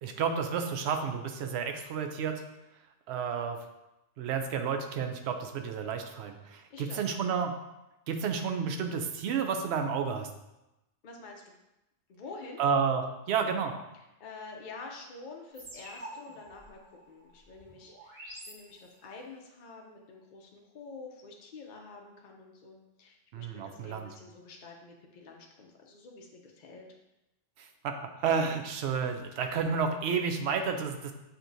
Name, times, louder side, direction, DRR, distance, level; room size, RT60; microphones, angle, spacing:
voice 1, 0.0-2.4 3.1-3.6 4.2-7.5 8.1-10.3 12.6-13.7 23.3-24.1 27.6-27.9 28.2-31.1, right 6 dB, 70° right, 5 dB, 0.8 m, -31 dB
voice 2, 6.7-7.3 11.0-11.6 12.1-12.6 13.9-26.9, left 3 dB, 50° left, 1 dB, 0.6 m, -48 dB
sound 1, 15.5-19.2, right 1 dB, 30° right, 1.9 m, -48 dB
6.6 x 2.9 x 2.6 m, 0.93 s
omnidirectional pair, 1.2 m